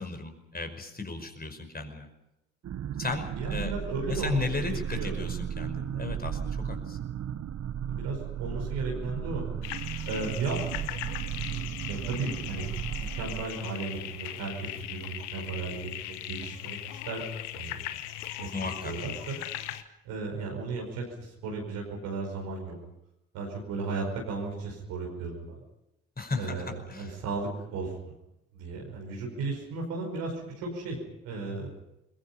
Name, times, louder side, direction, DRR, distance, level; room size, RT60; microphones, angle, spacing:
voice 1, 0.0-2.1 3.0-3.7 4.1-6.4 6.6-7.0 18.5-18.9 26.2-27.1, left 3 dB, 25° left, 6 dB, 5.4 m, -35 dB
sound 1, 2.6-13.5, right 9 dB, 50° right, 1.1 m, -35 dB
voice 2, 3.4-5.1 7.9-9.5 10.1-10.6 11.9-12.7 12.9-16.8 17.1-17.2 17.5-17.7 18.4-18.5 18.8-19.4 20.1-22.8 23.3-25.6 26.4-27.9 28.5-31.0 31.2-31.7, right 4 dB, 70° right, -1 dB, 5.4 m, -35 dB
sound 2, 9.6-19.8, left 14 dB, 80° left, 1.2 m, -39 dB
28.0 x 22.0 x 5.7 m, 0.87 s
hypercardioid pair, 45°, 35 cm